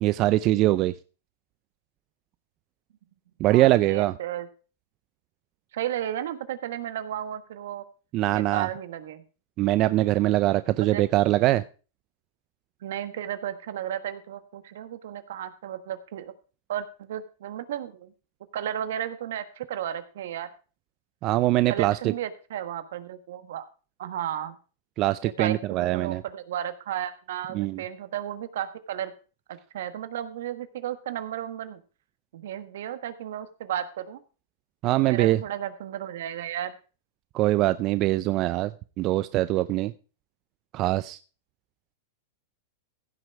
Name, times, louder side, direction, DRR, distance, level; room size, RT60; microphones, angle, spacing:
voice 1, 0.0-0.9 3.4-4.1 8.1-8.7 9.6-11.6 21.2-22.0 25.0-26.2 27.5-27.8 34.8-35.4 37.3-38.7 39.0-39.9 40.7-41.2, right 16 dB, 40° right, 14 dB, 0.4 m, -22 dB
voice 2, 3.5-4.5 5.7-7.8 8.3-9.2 10.9-11.0 12.8-16.3 16.7-18.1 18.5-20.5 21.7-23.6 24.0-24.6 25.2-29.1 29.5-31.8 32.3-34.2 35.0-36.7, right 10 dB, 75° right, 11 dB, 1.4 m, -33 dB
15.5 x 6.2 x 4.7 m, 0.36 s
hypercardioid pair, 140°, 0 cm